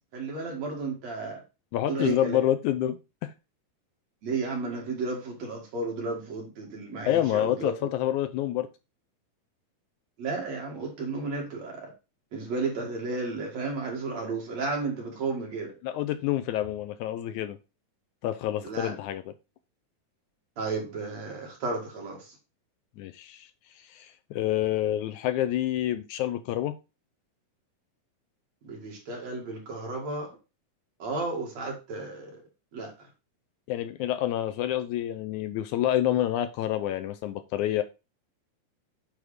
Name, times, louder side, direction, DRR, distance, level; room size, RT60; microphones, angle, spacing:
voice 1, 0.1-1.4 1.9-2.4 4.2-7.7 10.2-11.9 12.3-15.8 18.6-19.0 20.6-22.3 28.6-30.4 31.0-32.4 32.7-33.1, right 3 dB, 55° right, 0 dB, 3.2 m, -33 dB
voice 2, 1.7-3.3 7.1-8.7 15.8-17.6 18.2-19.3 23.0-23.5 23.8-26.7 33.7-37.8, left 12 dB, 80° left, 10 dB, 1.8 m, -28 dB
9.5 x 3.6 x 4.9 m, 0.28 s
omnidirectional pair, 3.9 m